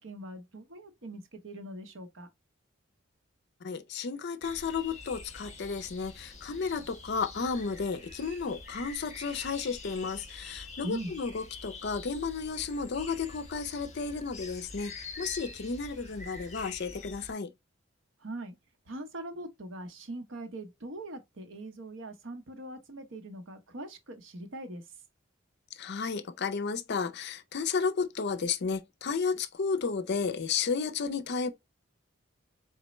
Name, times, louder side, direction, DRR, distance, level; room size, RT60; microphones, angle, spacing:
voice 1, 0.0-2.3 10.8-11.2 18.2-18.6 18.9-24.8, right 1 dB, 60° right, 0.9 m, -41 dB
voice 2, 3.6-17.5 25.7-31.5, left 5 dB, 55° left, 0.5 m, -33 dB
sound 1, 4.4-17.3, left 3 dB, 35° left, 1.2 m, -46 dB
4.1 x 3.7 x 3.1 m
head